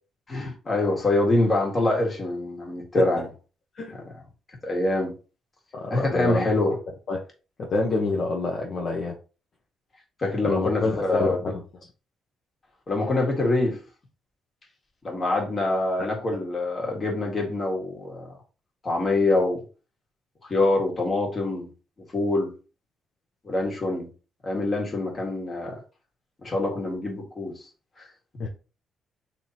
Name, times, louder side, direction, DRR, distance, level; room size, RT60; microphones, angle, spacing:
voice 1, 0.3-3.3 4.6-5.1 5.9-6.7 10.2-11.4 12.9-13.8 15.0-18.3 18.8-19.6 20.5-21.7 22.1-22.5 23.4-24.1 24.4-25.8 26.4-27.5, left 2 dB, 35° left, 1.7 m, -25 dB
voice 2, 5.7-6.8 7.1-7.2 7.6-9.2 10.4-11.6 16.0-16.1 28.4-28.5, left 3 dB, 55° left, 0.8 m, -27 dB
3.2 x 2.8 x 4.2 m
cardioid pair, 90°, 0 cm